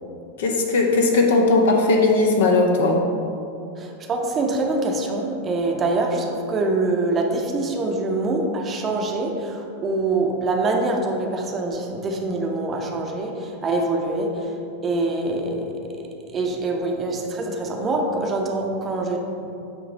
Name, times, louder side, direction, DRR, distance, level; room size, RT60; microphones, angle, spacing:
voice 1, 0.4-3.0, left 3 dB, 60° left, 1 dB, 0.9 m, -18 dB
voice 2, 3.8-14.6 14.8-19.3, right 2 dB, 25° right, 2 dB, 0.7 m, -25 dB
8.6 x 3.1 x 5.1 m, 2.7 s
figure-of-eight pair, 90°, 0 cm